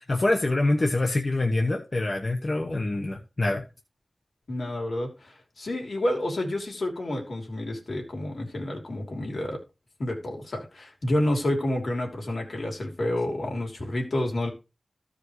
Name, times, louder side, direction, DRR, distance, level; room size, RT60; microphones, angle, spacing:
voice 1, 0.1-3.6, left 2 dB, 45° left, 1.2 m, -25 dB
voice 2, 4.5-9.6 10.0-14.5, left 1 dB, 75° left, 3.0 m, -29 dB
15.0 x 5.1 x 3.2 m
wide cardioid pair, 80°, 0 cm